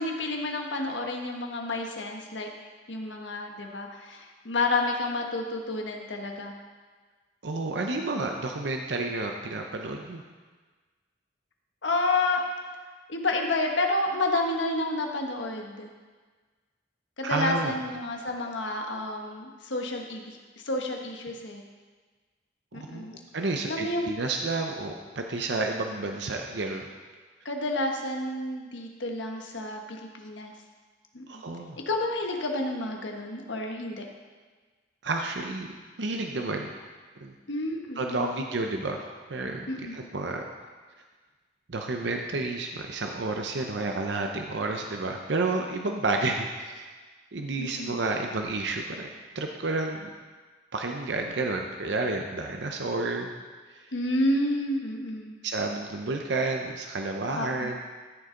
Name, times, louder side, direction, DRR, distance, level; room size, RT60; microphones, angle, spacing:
voice 1, 0.0-2.5 2.9-6.5 11.8-12.4 13.1-15.9 17.2-20.4 20.6-21.6 22.7-23.2 23.7-24.1 27.4-30.5 31.1-31.3 31.9-34.1 37.5-38.3 39.7-40.0 47.6-48.0 53.9-55.3 57.4-57.7, left 2 dB, 85° left, 2 dB, 1.3 m, -30 dB
voice 2, 7.4-10.2 17.2-17.7 22.7-26.9 31.3-31.8 35.0-36.7 37.2-37.3 38.0-40.4 41.7-46.9 47.3-49.1 49.3-50.1 50.7-53.3 53.7-53.8 55.4-57.8, right 3 dB, 70° right, 3 dB, 0.7 m, -30 dB
13.5 x 6.6 x 3.8 m, 1.4 s
head